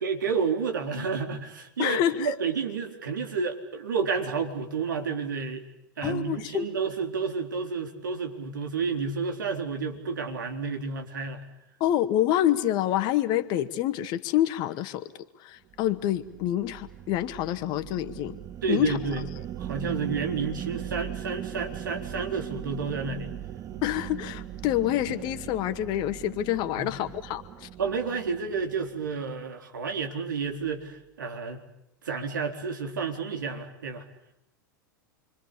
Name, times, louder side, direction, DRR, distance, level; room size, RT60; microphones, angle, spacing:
voice 1, 0.0-5.6 6.0-11.4 18.6-19.3 19.6-23.3 26.8-26.9 27.8-31.6 32.0-34.0, right 5 dB, 75° right, 3 dB, 3.9 m, -30 dB
voice 2, 1.8-2.3 6.0-6.7 11.8-15.0 15.4-18.4 18.7-19.0 23.8-27.7, left 12 dB, 45° left, 10 dB, 1.9 m, -27 dB
sound 1, 15.7-29.3, right 11 dB, 30° right, 1.3 m, -39 dB
28.5 x 25.0 x 8.4 m, 0.82 s
figure-of-eight pair, 90°, 11 cm